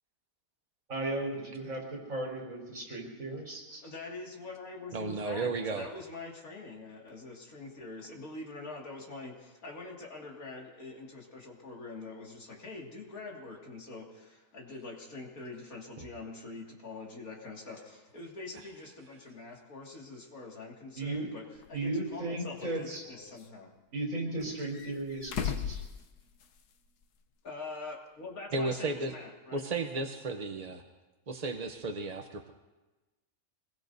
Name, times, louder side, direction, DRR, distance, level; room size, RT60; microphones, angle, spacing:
voice 1, 0.9-3.8 20.9-21.3 21.7-23.0 23.9-25.8, right 2 dB, 55° right, -2 dB, 4.9 m, -35 dB
voice 2, 3.8-23.7 27.4-29.6, left 3 dB, 65° left, -1 dB, 2.6 m, -44 dB
voice 3, 4.9-5.9 28.5-29.2 29.5-30.8 31.3-32.5, right 3 dB, 40° right, 5 dB, 0.6 m, -34 dB
sound 1, 21.6-21.7 22.6-23.5 24.4-26.7 27.0-27.1 28.7-28.8, left 8 dB, 85° left, 1.4 m, -38 dB
25.5 x 21.0 x 2.7 m, 1.2 s
omnidirectional pair, 1.6 m